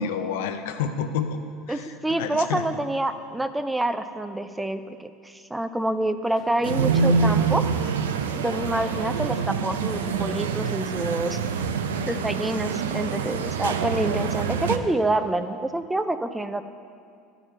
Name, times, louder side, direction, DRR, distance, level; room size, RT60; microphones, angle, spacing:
voice 1, 0.0-1.4 1.7-2.8, left 6 dB, 75° left, 8 dB, 0.5 m, -29 dB
voice 2, 1.7-7.7 8.3-11.4 12.1-16.6, right 1 dB, 10° right, 10 dB, 0.4 m, -27 dB
sound 1, 6.2-14.3, left 3 dB, 35° left, 0.9 m, -46 dB
sound 2, 6.6-14.8, right 5 dB, 85° right, 0.4 m, -26 dB
11.0 x 5.0 x 4.3 m, 2.3 s
hypercardioid pair, 85°, 0 cm